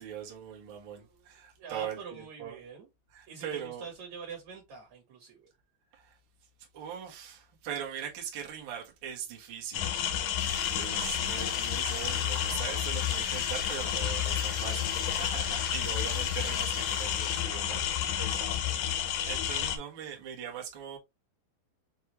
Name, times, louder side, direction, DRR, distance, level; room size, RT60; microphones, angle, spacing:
voice 1, 0.0-2.6 3.1-3.9 5.9-6.2 6.7-18.2 19.2-21.0, right 9 dB, 90° right, 1.0 m, -41 dB
voice 2, 0.9-2.9 3.3-5.5 18.2-18.9, right 5 dB, 60° right, 2.0 m, -46 dB
sound 1, 9.7-19.8, left 10 dB, 90° left, 1.8 m, -30 dB
sound 2, 10.4-17.9, left 1 dB, 50° left, 0.5 m, -44 dB
6.4 x 2.4 x 2.9 m
omnidirectional pair, 4.5 m